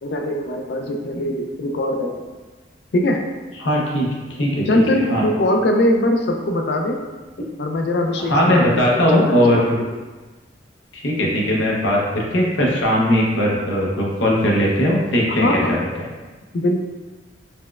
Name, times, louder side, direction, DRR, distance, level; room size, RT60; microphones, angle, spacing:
voice 1, 0.0-2.3 2.9-3.2 4.7-7.0 7.6-10.0 15.3-15.8 16.5-16.8, left 1 dB, 60° left, 3 dB, 0.4 m, -21 dB
voice 2, 3.6-4.1 4.4-5.3 8.2-9.8 10.9-16.1, equal, 90° left, -3 dB, 0.7 m, -19 dB
4.2 x 2.1 x 2.3 m, 1.3 s
head